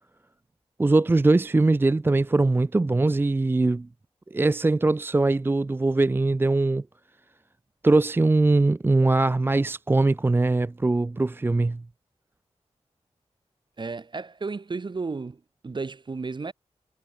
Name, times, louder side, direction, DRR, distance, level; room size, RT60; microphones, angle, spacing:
voice 1, 0.8-3.9 4.3-6.8 7.8-11.8, right 2 dB, 20° right, 0.4 m, -21 dB
voice 2, 13.8-16.5, right 4 dB, 45° right, 1.5 m, -33 dB
wide cardioid pair, 95°, 11 cm